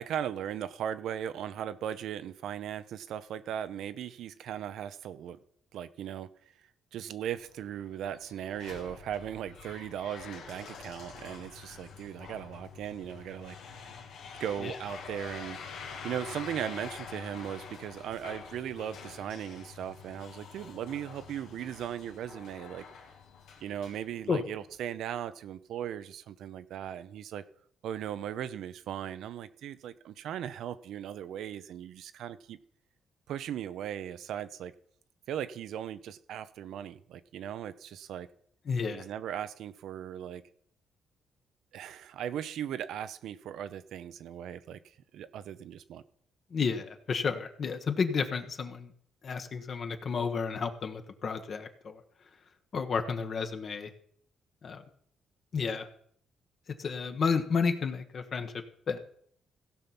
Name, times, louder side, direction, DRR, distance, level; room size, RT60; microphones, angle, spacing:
voice 1, 0.0-5.4 5.7-6.3 6.9-13.6 14.4-22.9 23.6-27.4 27.8-32.6 33.3-34.7 35.3-38.3 38.9-40.4 41.7-46.0, right 10 dB, 80° right, 13 dB, 0.6 m, -38 dB
sound 1, 7.2-24.7, left 5 dB, 90° left, 1.9 m, -47 dB
voice 2, 38.7-39.1 46.5-48.9 49.2-52.0 52.7-53.9 54.6-54.8 55.5-55.9 56.8-58.5 58.9-59.0, left 5 dB, 50° left, 7 dB, 1.2 m, -31 dB
16.0 x 5.5 x 5.9 m, 0.63 s
cardioid pair, 90°, 0 cm